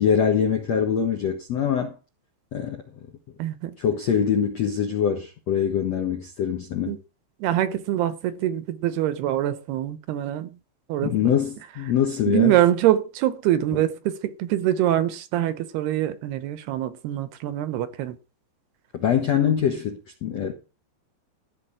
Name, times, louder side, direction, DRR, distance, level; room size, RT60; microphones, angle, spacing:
voice 1, 0.0-2.0 2.5-2.8 3.8-7.0 11.0-12.5 18.9-20.5, left 8 dB, 65° left, 1.7 m, -23 dB
voice 2, 3.4-3.8 6.9-7.0 7.4-10.6 10.9-11.2 12.3-18.2, right 12 dB, 75° right, 2.7 m, -24 dB
14.5 x 5.1 x 8.8 m
omnidirectional pair, 5.1 m